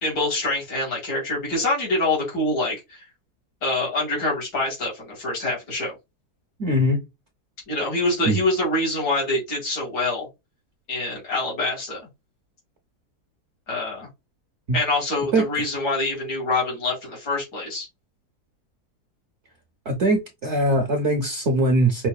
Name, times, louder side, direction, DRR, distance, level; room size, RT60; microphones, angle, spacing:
voice 1, 0.0-3.0 3.6-6.0 7.7-10.3 10.9-12.1 13.7-14.1 14.7-17.9, left 2 dB, 75° left, 2.7 m, -25 dB
voice 2, 6.6-7.0 8.2-8.4 15.3-15.4 19.9-22.1, right 1 dB, 55° right, 0.9 m, -21 dB
5.7 x 2.5 x 2.3 m
omnidirectional pair, 1.7 m